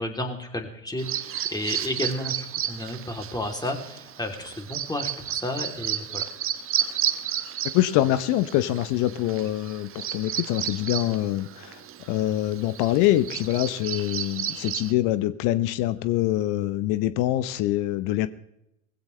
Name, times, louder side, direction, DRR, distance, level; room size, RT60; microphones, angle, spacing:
voice 1, 0.0-6.2, left 1 dB, 10° left, 3 dB, 3.2 m, -32 dB
Bird vocalization bird call bird song, 1.0-14.9, right 10 dB, 35° right, 1.1 m, -32 dB
voice 2, 7.7-11.8 12.1-18.3, left 14 dB, 55° left, 15 dB, 0.9 m, -24 dB
19.5 x 16.0 x 3.3 m, 0.80 s
hypercardioid pair, 80°, 38 cm